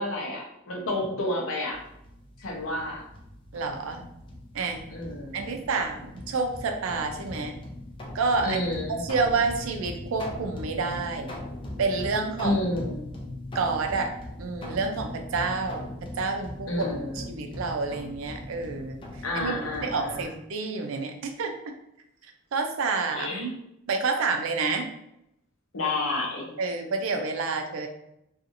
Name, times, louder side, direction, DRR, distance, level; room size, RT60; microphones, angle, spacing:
voice 1, 0.0-1.8 2.4-3.0 4.9-5.6 8.4-9.0 12.4-13.1 16.7-17.4 19.2-20.4 23.1-23.5 25.7-26.5, left 2 dB, 80° left, -1 dB, 0.7 m, -30 dB
sound 1, 1.7-20.2, left 1 dB, 25° left, 0.4 m, -40 dB
voice 2, 3.5-4.0 4.5-4.8 5.3-7.6 8.1-8.6 8.9-11.3 11.8-12.6 13.5-14.1 14.4-15.9 16.2-16.7 17.2-19.0 19.3-21.5 22.5-23.6 23.9-24.9 26.6-27.9, right 4 dB, 80° right, 5 dB, 0.4 m, -28 dB
2.7 x 2.4 x 2.5 m, 0.81 s
head